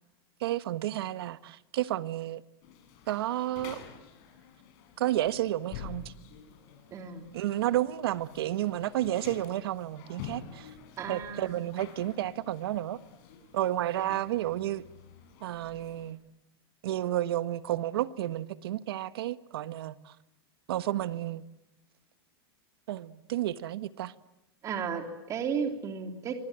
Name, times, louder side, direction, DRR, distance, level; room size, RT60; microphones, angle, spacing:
voice 1, 0.4-2.4 3.1-3.8 5.0-6.1 7.3-10.7 11.1-13.0 13.5-14.8 15.4-16.2 16.8-20.1 20.7-21.4 22.9-24.1, right 13 dB, 70° right, 1.4 m, -31 dB
sound 1, 2.6-16.1, left 8 dB, 45° left, 6.6 m, -49 dB
voice 2, 6.9-7.2 11.0-11.5 14.0-14.2 24.6-26.3, right 6 dB, 25° right, 3.2 m, -34 dB
26.0 x 25.5 x 9.0 m
supercardioid pair, 155°, 13 cm